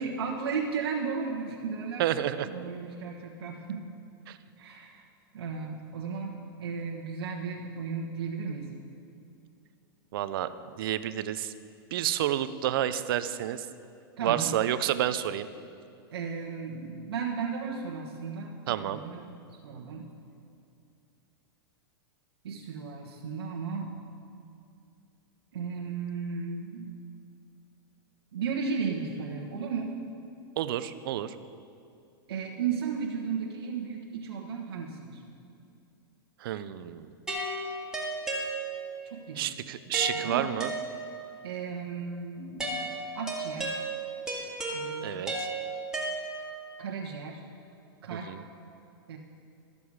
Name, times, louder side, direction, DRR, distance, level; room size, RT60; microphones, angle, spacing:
voice 1, 0.0-2.1 2.5-3.9 4.6-5.0 5.3-8.7 14.2-14.5 16.1-19.3 19.6-20.1 22.4-23.9 25.5-26.9 28.3-29.9 32.3-35.2 39.0-39.5 40.1-40.5 41.4-42.9 43.1-43.8 44.7-45.2 46.8-47.4 48.0-48.3 49.1-49.2, right 5 dB, 80° right, -2 dB, 1.3 m, -35 dB
voice 2, 2.0-2.5 4.3-4.4 10.1-10.5 10.8-11.5 11.9-13.7 14.2-15.5 18.7-19.0 30.6-31.3 36.4-37.1 39.4-40.7 45.0-45.5 48.1-48.4, right 12 dB, 65° right, 13 dB, 0.6 m, -30 dB
sound 1, 37.3-39.1 39.9-41.4 42.6-46.7, right 2 dB, 5° right, 2.0 m, -34 dB
13.5 x 6.9 x 4.8 m, 2.6 s
hypercardioid pair, 120°, 13 cm